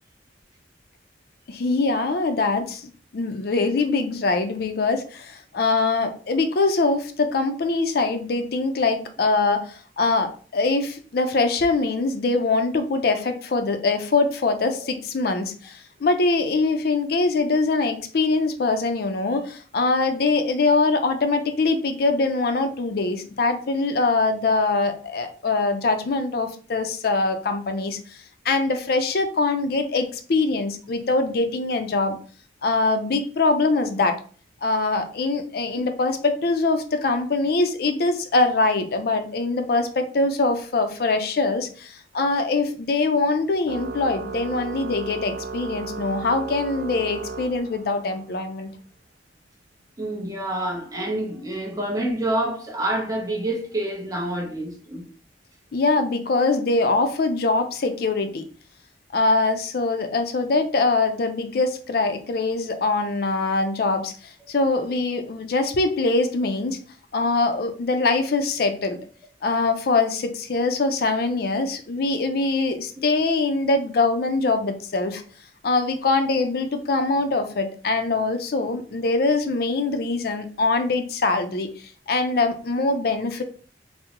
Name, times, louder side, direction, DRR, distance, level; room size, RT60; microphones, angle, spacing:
voice 1, 1.5-32.2 32.6-34.2 34.6-48.7 55.7-58.4 59.1-66.8 67.1-69.0 69.4-75.2 75.6-83.4, left 3 dB, 60° left, 0.4 m, -23 dB
Organ, 43.7-48.2, right 4 dB, 55° right, 0.3 m, -35 dB
voice 2, 50.0-55.1, right 1 dB, 20° right, 0.7 m, -27 dB
3.5 x 2.0 x 2.8 m
head